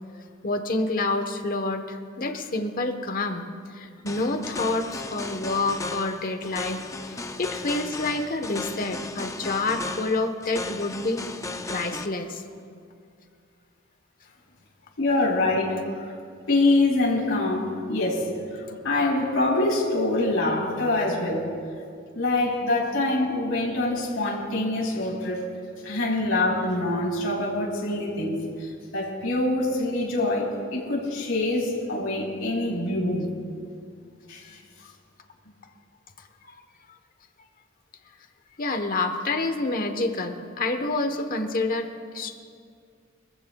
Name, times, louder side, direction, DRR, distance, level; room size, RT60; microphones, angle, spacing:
voice 1, 0.4-11.2 11.7-12.4 34.8-34.9 38.6-41.9 42.1-42.4, left 2 dB, 45° left, 6 dB, 1.1 m, -28 dB
sound 1, 4.1-12.1, left 3 dB, 15° left, 0.5 m, -36 dB
voice 2, 15.0-16.1 16.5-18.3 18.8-21.5 22.1-25.5 25.8-33.3 34.3-34.6, left 2 dB, 85° left, -5 dB, 4.1 m, -25 dB
24.5 x 15.0 x 2.3 m, 2.2 s
head